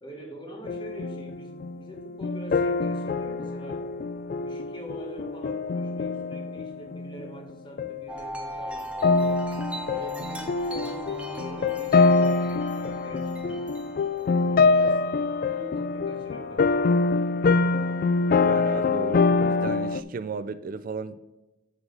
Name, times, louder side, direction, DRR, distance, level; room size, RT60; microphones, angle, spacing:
voice 1, 0.0-3.9 4.4-9.4 9.9-13.7 14.4-15.0 15.5-16.9, right 1 dB, 25° left, 1.7 m, -44 dB
sound 1, 0.7-7.5 7.8-8.1 9.0-20.0, left 4 dB, 45° left, 0.3 m, -25 dB
Wind chime, 8.1-14.6, equal, 5° right, 1.0 m, -38 dB
voice 2, 18.4-21.2, right 4 dB, 45° right, 0.3 m, -34 dB
8.0 x 5.0 x 5.2 m
head